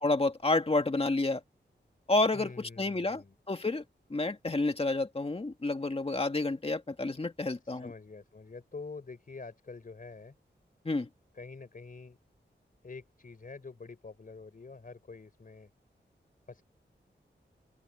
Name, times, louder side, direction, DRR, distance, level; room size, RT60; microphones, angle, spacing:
voice 1, 0.0-1.4 2.1-3.8 4.1-7.9 10.8-11.1, left 2 dB, 30° left, 2.0 m, -30 dB
voice 2, 2.3-3.3 7.6-10.4 11.3-12.2 12.8-15.7 16.5-16.6, left 4 dB, 50° left, 4.2 m, -46 dB
open air
wide cardioid pair, 105°, 19 cm